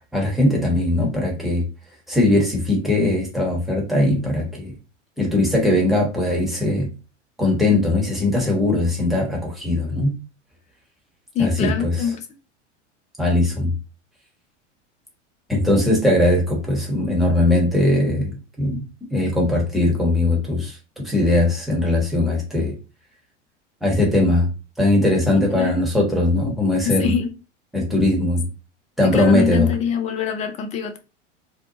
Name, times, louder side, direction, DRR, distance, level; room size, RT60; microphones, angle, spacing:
voice 1, 0.1-1.6 2.1-4.7 5.2-6.9 7.4-10.1 11.4-12.0 13.2-13.7 15.5-18.8 19.1-22.8 23.8-24.5 24.8-27.1 27.7-28.5 29.0-29.7, left 2 dB, ahead, 1.0 m, -20 dB
voice 2, 11.3-12.2 25.3-25.8 26.8-27.3 29.0-31.0, left 7 dB, 20° left, 0.4 m, -24 dB
2.8 x 2.1 x 2.7 m
hypercardioid pair, 90°, 37 cm